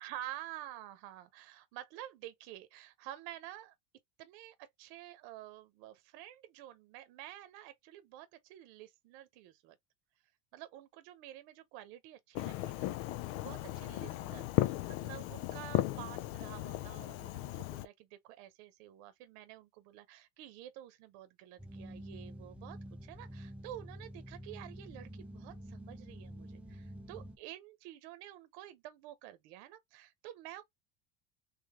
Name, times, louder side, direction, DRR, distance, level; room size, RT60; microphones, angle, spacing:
voice 1, 0.0-3.7 4.2-9.8 10.5-12.9 13.3-30.6, right 13 dB, 60° right, 0.9 m, -50 dB
Fireworks, 12.4-17.9, left 15 dB, 55° left, 0.5 m, -36 dB
sound 1, 21.6-27.4, equal, 5° right, 0.4 m, -48 dB
3.3 x 3.2 x 3.6 m
cardioid pair, 150°, 44 cm